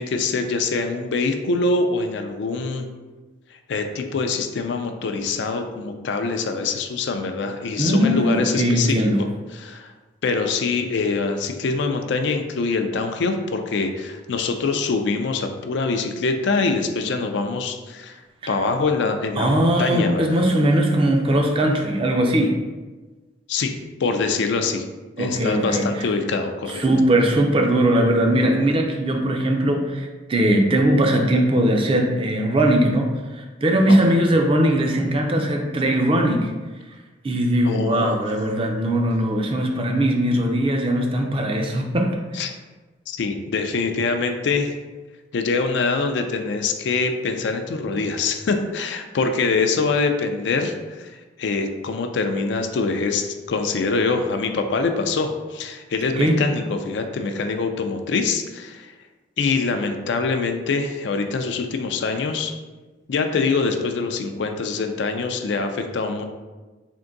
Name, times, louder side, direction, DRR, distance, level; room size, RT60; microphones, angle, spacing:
voice 1, 0.0-2.9 3.7-9.3 9.5-9.9 10.2-18.2 18.5-20.4 23.5-23.7 24.0-24.8 25.2-26.8 33.9-34.2 37.7-38.2 42.3-42.5 43.1-44.7 45.3-58.9 59.4-62.5 63.1-66.2, left 4 dB, 65° left, 6 dB, 0.4 m, -24 dB
voice 2, 7.8-9.2 18.4-18.5 19.4-22.5 25.2-26.1 26.7-36.5 37.2-42.2 56.1-56.4, right 1 dB, 30° right, 2 dB, 0.4 m, -20 dB
3.6 x 2.6 x 3.8 m, 1.2 s
head